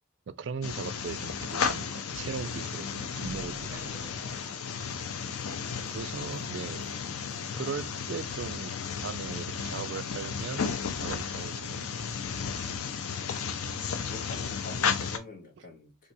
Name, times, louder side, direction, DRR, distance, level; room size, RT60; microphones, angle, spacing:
voice 1, 0.3-4.2 5.3-6.9 7.5-8.7 9.0-10.7 11.0-11.9, right 5 dB, 55° right, 0.3 m, -39 dB
sound 1, 0.6-15.2, left 6 dB, 85° left, 0.5 m, -34 dB
sound 2, 3.2-5.9 6.3-6.4 6.8-6.9 7.3-7.4, equal, 65° left, 1.3 m, -49 dB
voice 2, 14.1-16.1, left 2 dB, 40° left, 1.0 m, -45 dB
4.4 x 2.6 x 2.6 m
head